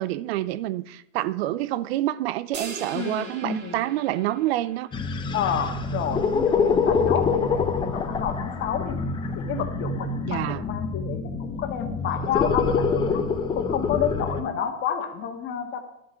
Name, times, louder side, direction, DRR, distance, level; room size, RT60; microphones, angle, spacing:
voice 1, 0.0-4.9 10.2-10.6, right 14 dB, 50° right, 0.6 m, -27 dB
sound 1, 2.5-5.1, right 4 dB, 25° right, 1.9 m, -40 dB
voice 2, 2.9-3.8 5.3-9.0 9.3-13.2 13.5-15.8, left 8 dB, 30° left, 1.6 m, -30 dB
sound 2, 4.9-14.4, left 4 dB, 10° left, 0.6 m, -26 dB
11.5 x 7.3 x 5.7 m
hypercardioid pair, 130°, 41 cm